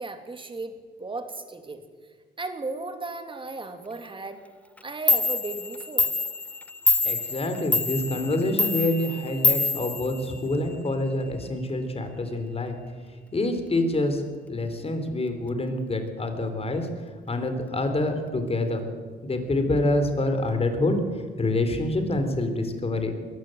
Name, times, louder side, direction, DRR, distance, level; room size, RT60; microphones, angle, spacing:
voice 1, 0.0-1.8 2.4-4.4 4.8-6.2, right 3 dB, 25° right, 7 dB, 2.7 m, -35 dB
Clock, 4.8-4.9 5.1-10.7, left 2 dB, 5° left, 0.6 m, -26 dB
voice 2, 7.0-12.8 13.3-14.2 14.5-16.9 17.3-18.8 19.2-21.0 21.4-23.1, left 2 dB, 30° left, 7 dB, 3.9 m, -26 dB
22.0 x 14.5 x 9.3 m, 1.5 s
cardioid pair, 90°, 20 cm